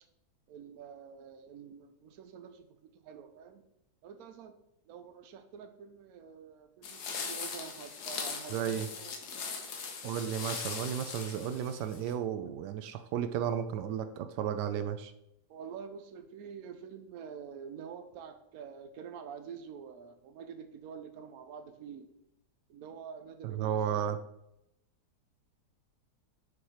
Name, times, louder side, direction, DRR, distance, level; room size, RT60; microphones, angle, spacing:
voice 1, 0.5-3.6 4.0-4.5 4.9-9.7 15.5-22.1 22.7-24.1, right 7 dB, 65° right, 8 dB, 1.1 m, -47 dB
sound 1, 6.8-12.1, left 5 dB, 75° left, 1.5 m, -40 dB
voice 2, 8.5-8.9 10.0-15.1 23.4-24.2, right 9 dB, 90° right, 9 dB, 1.2 m, -33 dB
6.7 x 4.8 x 4.3 m, 0.81 s
omnidirectional pair, 1.7 m